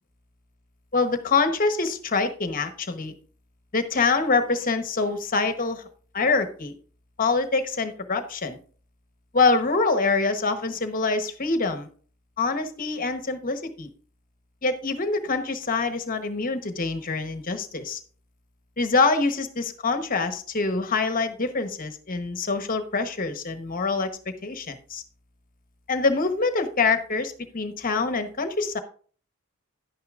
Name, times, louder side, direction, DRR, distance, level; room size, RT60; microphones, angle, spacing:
voice 1, 0.9-3.1 3.7-5.8 6.1-6.7 7.2-8.6 9.3-11.9 12.4-13.9 14.6-18.0 18.8-24.1 24.4-25.0 25.9-28.8, left 4 dB, 40° left, 8 dB, 1.0 m, -25 dB
11.0 x 9.4 x 2.4 m, 0.43 s
head